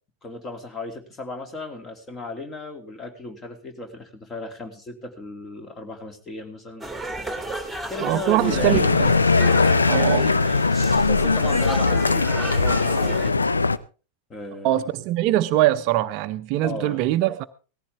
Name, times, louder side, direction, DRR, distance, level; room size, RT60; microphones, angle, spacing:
voice 1, 0.2-6.9 7.9-9.0 10.8-13.5 14.3-15.0 16.6-17.2, left 2 dB, 20° left, 2.7 m, -35 dB
sound 1, 6.8-13.3, right 1 dB, ahead, 2.5 m, -33 dB
voice 2, 8.0-9.1 9.9-10.3 14.6-17.4, right 14 dB, 45° right, 0.7 m, -22 dB
sound 2, 8.4-13.8, left 4 dB, 80° left, 0.6 m, -20 dB
18.0 x 14.5 x 3.5 m
figure-of-eight pair, 90°, 0 cm